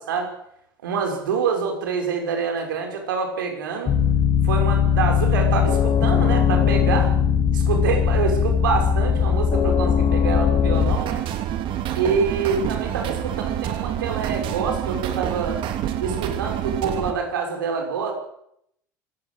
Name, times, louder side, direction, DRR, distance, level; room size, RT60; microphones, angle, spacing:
voice 1, 0.8-3.9 4.4-7.1 7.5-11.2 11.9-15.6 16.0-18.1, right 6 dB, 75° right, 3 dB, 6.0 m, -26 dB
sound 1, 3.9-11.0, left 7 dB, 40° left, 2.3 m, -19 dB
sound 2, 10.7-17.1, right 11 dB, 50° right, 3.0 m, -27 dB
25.0 x 16.0 x 8.0 m, 0.74 s
figure-of-eight pair, 70°, 11 cm